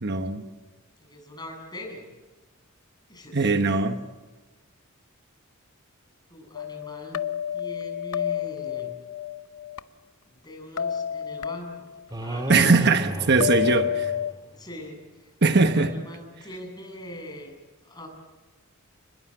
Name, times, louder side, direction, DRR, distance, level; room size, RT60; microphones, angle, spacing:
voice 1, 0.0-0.4 3.3-4.0 12.5-13.9 15.4-15.9, right 3 dB, 50° right, 1.2 m, -20 dB
voice 2, 1.0-2.1 3.1-3.5 6.3-7.2 7.5-9.0 10.3-13.8 14.5-15.3 15.7-17.5 17.8-18.1, left 1 dB, 20° left, 7.4 m, -42 dB
sound 1, 6.5-9.8 10.8-12.0 13.4-14.3, left 9 dB, 85° left, 0.7 m, -29 dB
sound 2, 12.1-14.6, equal, 20° right, 2.2 m, -33 dB
29.5 x 21.0 x 7.8 m
head